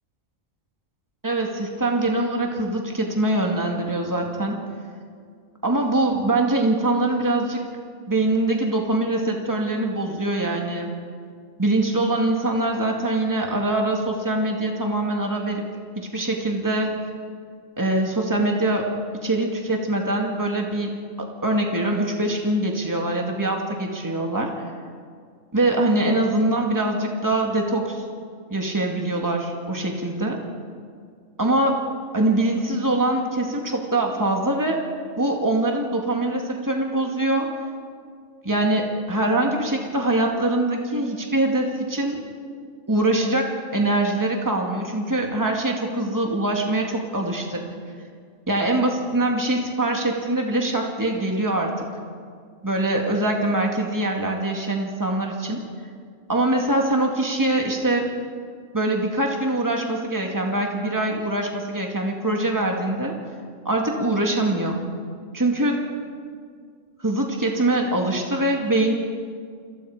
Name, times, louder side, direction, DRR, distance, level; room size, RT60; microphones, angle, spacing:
voice 1, 1.2-4.6 5.6-7.6 8.1-10.9 11.6-15.6 16.0-17.0 17.8-18.9 19.2-20.9 21.4-24.5 25.5-28.0 28.5-30.4 31.4-31.8 32.1-34.8 35.2-37.5 38.4-42.2 42.9-47.6 48.5-51.9 52.6-55.6 56.3-58.1 58.7-63.1 63.6-64.8 65.3-65.8 67.0-68.9, right 2 dB, 15° right, 1 dB, 2.4 m, -23 dB
29.0 x 21.5 x 5.1 m, 2.1 s
omnidirectional pair, 1.3 m